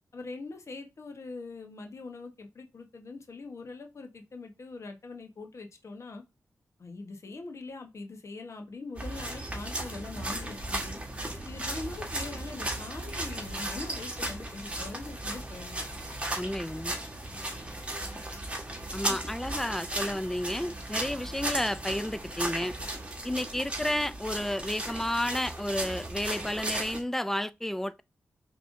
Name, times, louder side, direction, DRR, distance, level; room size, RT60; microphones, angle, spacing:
voice 1, 0.1-6.2 6.8-11.0 11.4-15.8 19.1-19.2, left 3 dB, 55° left, 1.1 m, -42 dB
sound 1, 9.0-27.0, right 1 dB, 20° right, 1.6 m, -36 dB
voice 2, 16.4-17.0 18.9-22.8 23.2-28.0, left 1 dB, 5° left, 0.4 m, -31 dB
5.0 x 3.4 x 2.6 m
cardioid pair, 55°, 6 cm